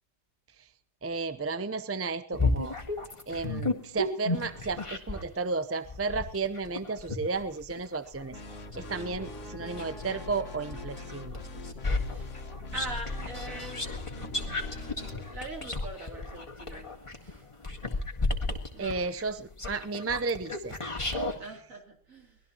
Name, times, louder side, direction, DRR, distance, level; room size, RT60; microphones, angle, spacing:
voice 1, 1.0-2.8 3.3-8.4 8.8-11.4 18.8-20.7, right 4 dB, 20° right, 11 dB, 0.3 m, -33 dB
sound 1, 2.3-5.3 5.8-10.2 10.7-21.4, left 2 dB, 20° left, 1.9 m, -33 dB
sound 2, 8.3-15.4, left 3 dB, 50° left, 1.8 m, -42 dB
sound 3, 8.7-11.1 11.4-11.5, equal, ahead, 3.6 m, -54 dB
voice 2, 12.7-13.9 15.3-17.5 18.4-19.0 21.4-22.4, right 2 dB, 55° right, 1 dB, 3.9 m, -42 dB
23.5 x 19.0 x 3.0 m, 0.41 s
omnidirectional pair, 1.7 m